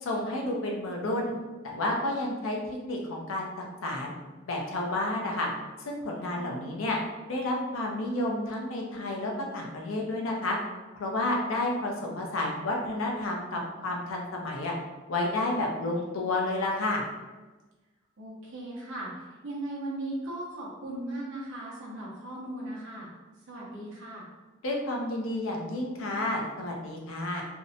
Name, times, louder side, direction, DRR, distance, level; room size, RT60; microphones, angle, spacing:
voice 1, 0.0-1.3 1.6-2.6 2.8-3.5 3.8-4.1 4.5-5.5 5.9-7.0 7.3-10.6 11.0-14.7 15.1-17.0 24.6-27.4, left 2 dB, 80° left, 0 dB, 0.5 m, -30 dB
voice 2, 6.3-6.7 18.2-23.1 23.5-24.3, right 1 dB, 65° right, -5 dB, 0.6 m, -38 dB
2.6 x 2.1 x 2.6 m, 1.2 s
head